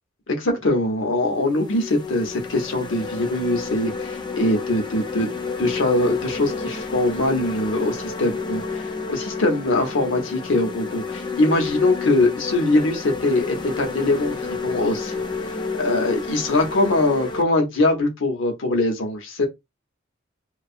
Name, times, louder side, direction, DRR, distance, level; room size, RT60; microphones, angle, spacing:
voice 1, 0.3-5.3 5.6-15.1 15.8-19.5, left 2 dB, 80° left, 0.8 m, -22 dB
sound 1, 0.5-0.7 1.3-17.4, left 4 dB, 25° left, 0.3 m, -30 dB
2.6 x 2.3 x 2.4 m
head